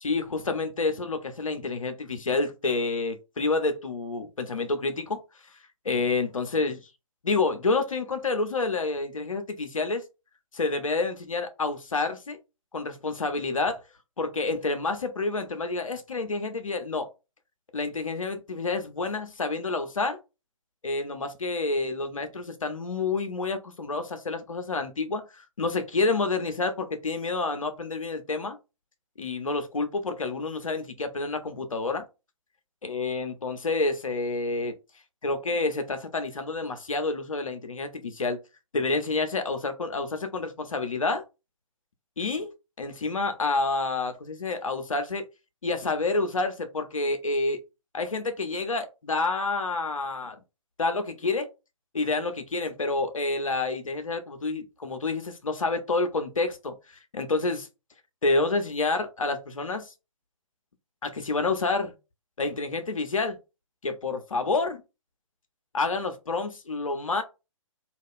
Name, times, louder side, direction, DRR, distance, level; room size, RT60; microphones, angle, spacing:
voice 1, 0.0-5.2 5.8-6.8 7.2-10.0 10.5-12.4 12.7-13.8 14.2-17.1 17.7-20.2 20.8-28.6 29.2-32.1 32.8-34.7 35.2-38.4 38.7-41.2 42.2-45.2 45.6-47.6 47.9-50.4 50.8-51.5 51.9-56.8 57.1-57.7 58.2-59.9 61.0-61.9 62.4-63.4 63.8-64.8 65.7-67.2, left 3 dB, 70° left, 0.6 m, -28 dB
2.4 x 2.3 x 3.6 m
figure-of-eight pair, 125°, 17 cm